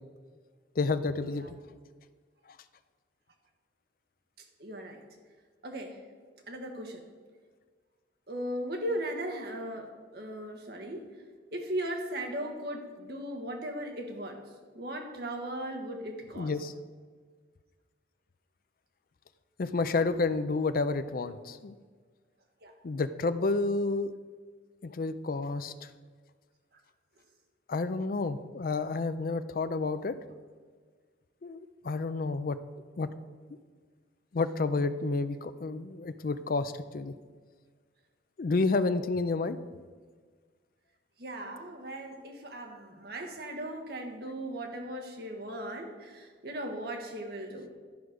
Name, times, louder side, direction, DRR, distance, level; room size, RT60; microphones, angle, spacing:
voice 1, 0.8-1.5 16.4-16.7 19.6-21.7 22.8-24.1 24.8-25.7 27.7-30.1 31.4-32.6 33.0-33.1 34.3-37.1 38.4-39.6, left 3 dB, 50° left, 11 dB, 0.4 m, -30 dB
voice 2, 4.4-5.0 5.6-6.0 6.5-7.0 8.3-11.1 11.5-14.4 14.7-16.5 22.6-22.7 41.2-47.8, right 1 dB, 55° right, 3 dB, 1.2 m, -37 dB
11.0 x 4.8 x 6.3 m, 1.6 s
head